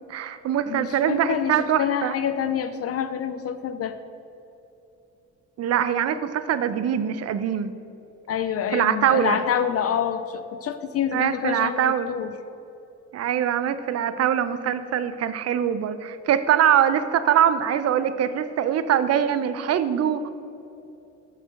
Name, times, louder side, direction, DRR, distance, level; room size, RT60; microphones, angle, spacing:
voice 1, 0.1-2.2 5.6-7.7 8.7-9.4 11.1-12.1 13.1-20.3, right 9 dB, 55° right, 12 dB, 0.5 m, -23 dB
voice 2, 0.7-4.0 8.3-12.3, left 8 dB, 50° left, 10 dB, 0.5 m, -27 dB
6.3 x 4.9 x 6.4 m, 2.8 s
cardioid pair, 90°, 30 cm